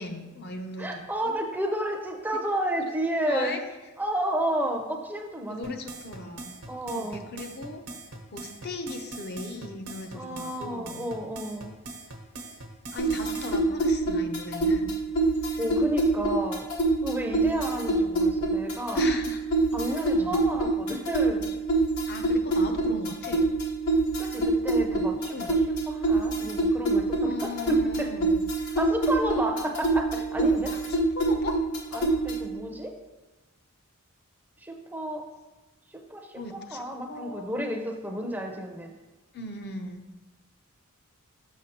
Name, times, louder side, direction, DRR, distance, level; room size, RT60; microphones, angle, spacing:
voice 1, 0.0-1.4 3.3-3.6 5.5-6.5 6.9-7.8 8.3-11.1 12.9-14.9 18.9-19.4 20.1-20.4 22.1-23.4 25.3-25.6 27.2-28.4 30.4-30.5 30.9-31.6 36.3-36.8 37.1-37.5 39.3-40.1, left 2 dB, 50° left, 5 dB, 0.5 m, -38 dB
voice 2, 0.8-3.6 4.0-5.8 6.7-7.3 10.1-11.7 15.6-16.7 17.0-19.1 19.7-21.5 24.2-25.3 25.9-28.1 28.8-30.7 31.9-32.9 34.6-35.2 35.9-38.9, right 1 dB, 10° right, 2 dB, 0.5 m, -31 dB
sound 1, 5.6-13.6, right 2 dB, 90° right, 0.9 m, -41 dB
sound 2, 13.0-32.5, right 2 dB, 90° left, 1.1 m, -26 dB
6.4 x 5.9 x 2.8 m, 1.2 s
head